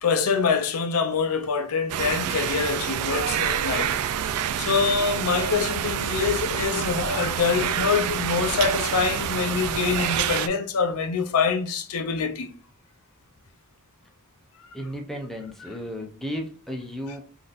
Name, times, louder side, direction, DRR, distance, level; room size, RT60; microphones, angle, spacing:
voice 1, 0.0-3.9 4.6-12.6, left 5 dB, 75° left, 0.5 m, -25 dB
sound 1, 1.9-10.5, right 9 dB, 85° right, 0.3 m, -27 dB
voice 2, 14.7-17.2, equal, ahead, 0.6 m, -34 dB
3.8 x 2.6 x 2.4 m
head